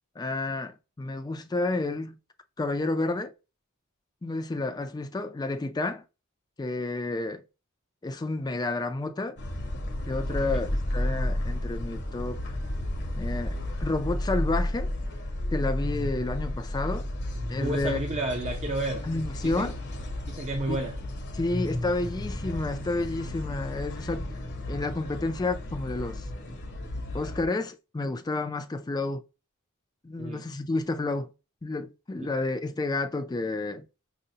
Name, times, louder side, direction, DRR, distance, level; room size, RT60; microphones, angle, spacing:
voice 1, 0.2-2.2 2.6-3.3 4.2-6.0 6.6-7.4 8.0-9.4 10.1-12.4 13.2-14.9 15.5-17.1 17.5-18.0 19.0-19.8 20.7-20.8 21.3-24.3 24.7-26.3 27.1-29.2 30.0-31.3 31.6-33.9, left 2 dB, 20° left, 0.3 m, -30 dB
sound 1, 9.4-27.5, left 1 dB, 55° left, 0.8 m, -32 dB
voice 2, 17.6-19.0 19.4-19.7 20.3-21.0 30.2-30.4 32.2-32.3, right 2 dB, 30° right, 0.5 m, -31 dB
5.1 x 2.1 x 2.7 m
head